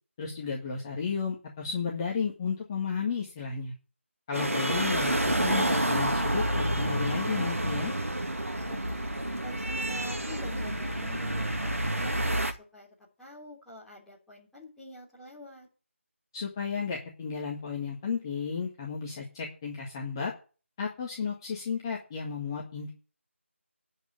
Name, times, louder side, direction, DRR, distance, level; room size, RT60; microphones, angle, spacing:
voice 1, 0.2-3.7 4.3-7.9 16.3-20.3 20.8-22.9, left 6 dB, 20° left, -2 dB, 1.8 m, -33 dB
sound 1, 4.3-12.5, right 1 dB, 85° right, 2.2 m, -29 dB
voice 2, 8.6-9.1 9.4-12.9 13.2-15.7, left 1 dB, ahead, -9 dB, 3.3 m, -46 dB
12.0 x 5.7 x 8.0 m, 0.37 s
figure-of-eight pair, 165°, 7 cm